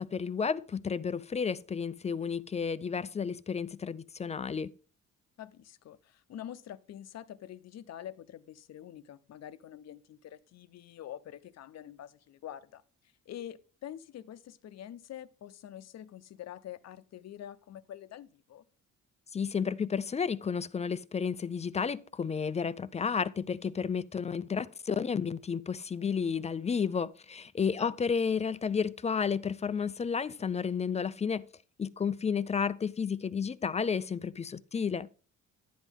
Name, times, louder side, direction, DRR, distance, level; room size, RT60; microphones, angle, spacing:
voice 1, 0.0-4.7 19.3-31.4 31.8-35.1, left 6 dB, 25° left, 0.3 m, -32 dB
voice 2, 5.4-12.8 13.3-18.6 27.8-28.0, left 11 dB, 60° left, 0.7 m, -46 dB
11.0 x 8.2 x 3.6 m
cardioid pair, 90°, 30 cm